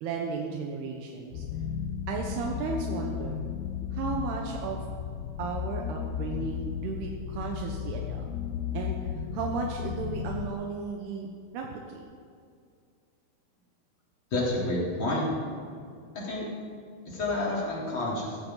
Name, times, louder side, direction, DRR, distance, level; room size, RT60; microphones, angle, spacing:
voice 1, 0.0-1.4 2.1-3.5 3.9-4.8 5.4-8.2 8.7-12.0, right 5 dB, 80° right, 1 dB, 3.0 m, -34 dB
sound 1, 1.3-10.5, left 8 dB, 90° left, 2.7 m, -34 dB
voice 2, 14.3-15.3 16.1-16.4 17.1-18.4, left 2 dB, 30° left, -5 dB, 3.9 m, -29 dB
15.5 x 14.5 x 3.9 m, 2.3 s
omnidirectional pair, 4.6 m